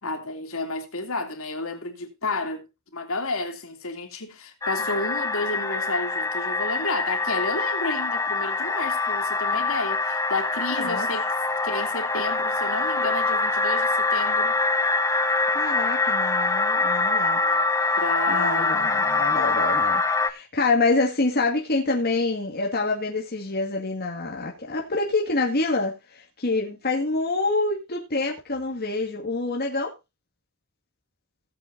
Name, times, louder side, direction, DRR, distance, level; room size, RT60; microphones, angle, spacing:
voice 1, 0.0-2.7 2.9-11.3 11.6-14.6 17.4-17.6 18.0-18.7, left 2 dB, 65° left, 2.9 m, -31 dB
sound 1, 4.6-20.3, left 3 dB, 15° left, 1.0 m, -24 dB
voice 2, 10.7-11.1 15.5-17.4 18.3-29.9, left 3 dB, 45° left, 2.2 m, -26 dB
18.0 x 8.1 x 2.7 m
head